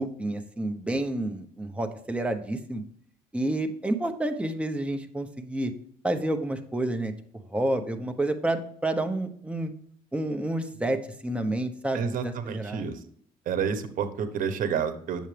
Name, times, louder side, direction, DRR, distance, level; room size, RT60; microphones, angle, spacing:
voice 1, 0.0-2.8 3.3-5.7 6.0-7.1 7.5-9.7 10.1-12.9, right 1 dB, 5° right, 6 dB, 1.0 m, -29 dB
voice 2, 11.9-13.0 13.5-15.3, right 7 dB, 60° right, 11 dB, 1.2 m, -29 dB
8.9 x 7.1 x 3.4 m, 0.62 s
cardioid pair, 110°, 16 cm